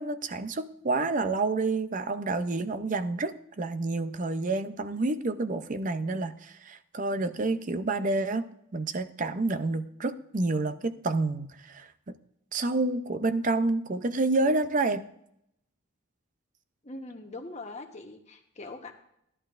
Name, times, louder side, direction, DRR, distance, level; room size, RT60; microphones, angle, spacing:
voice 1, 0.0-8.5 8.7-11.9 12.5-15.1, right 3 dB, 40° right, 11 dB, 0.6 m, -29 dB
voice 2, 16.8-18.9, left 2 dB, 35° left, 4 dB, 1.1 m, -42 dB
15.0 x 11.0 x 2.5 m, 0.75 s
head